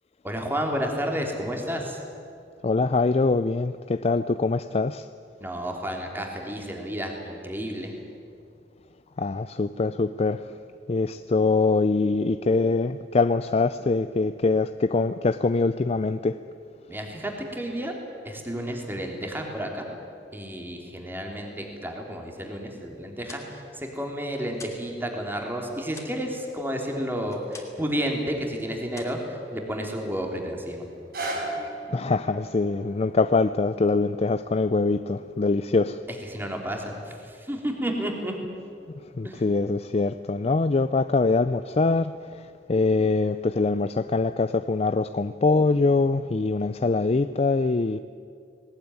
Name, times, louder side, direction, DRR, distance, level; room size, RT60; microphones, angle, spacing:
voice 1, 0.2-2.0 5.4-7.9 16.9-17.9 18.2-19.9 20.3-30.8 36.1-38.3 39.2-39.4, equal, 10° right, 1 dB, 3.1 m, -31 dB
voice 2, 2.6-5.1 9.2-10.4 10.9-16.4 31.9-36.0 39.2-42.4 42.7-48.0, left 3 dB, 35° left, 12 dB, 0.4 m, -23 dB
sound 1, 23.0-24.9 25.2-27.9 28.2-28.6 28.9-30.0, left 3 dB, 20° left, 2.7 m, -47 dB
sound 2, 30.9-37.0 37.6-37.7, right 2 dB, 60° right, 5.5 m, -38 dB
19.5 x 19.0 x 9.7 m, 2.4 s
head